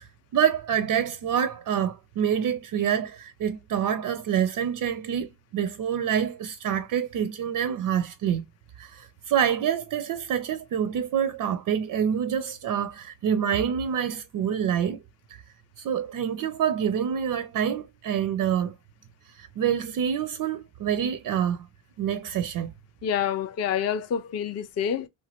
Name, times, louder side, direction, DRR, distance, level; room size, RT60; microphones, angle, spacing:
voice 1, 0.0-8.4 8.8-15.0 15.3-15.4 15.8-18.7 19.3-21.7 22.0-22.7, right 8 dB, 45° right, 0.4 m, -27 dB
voice 2, 23.0-25.1, left 8 dB, 35° left, 0.4 m, -27 dB
3.0 x 2.2 x 2.9 m
supercardioid pair, 70°, 47 cm